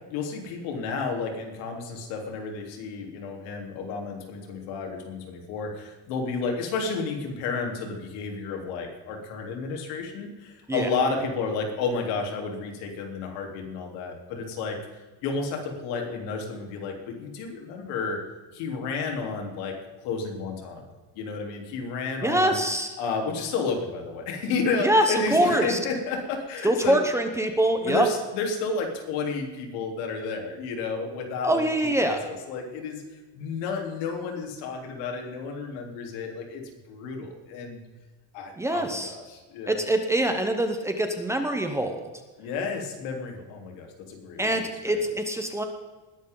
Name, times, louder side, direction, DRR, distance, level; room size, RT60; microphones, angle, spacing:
voice 1, 0.1-14.8 15.2-18.2 18.5-19.7 20.0-20.8 21.1-22.6 23.0-27.0 27.8-31.7 32.0-33.0 33.3-37.8 38.3-39.8 42.4-45.0, left 4 dB, 85° left, 2 dB, 3.6 m, -31 dB
voice 2, 22.2-22.9 24.8-25.8 26.6-28.1 31.4-32.2 38.6-39.1 39.7-42.1 44.4-45.6, right 1 dB, 5° right, 5 dB, 0.8 m, -24 dB
20.0 x 11.5 x 3.9 m, 1.3 s
cardioid pair, 175°, 42 cm